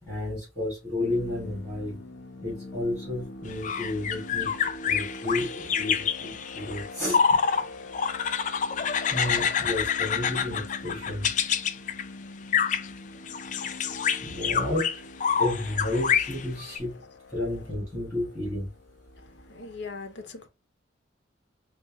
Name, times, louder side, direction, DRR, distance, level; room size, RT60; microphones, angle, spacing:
voice 1, 0.0-2.0 2.4-7.2 9.1-11.3 14.2-14.9 15.4-17.0 17.3-18.7, left 1 dB, ahead, 2.5 m, -32 dB
sound 1, 1.0-19.7, left 1 dB, 85° left, 0.8 m, -44 dB
sound 2, 3.5-7.7 7.9-12.0 12.5-12.9 13.3-16.8, left 7 dB, 40° left, 0.4 m, -27 dB
voice 2, 19.5-20.5, left 4 dB, 60° left, 0.8 m, -39 dB
4.5 x 2.4 x 3.5 m
head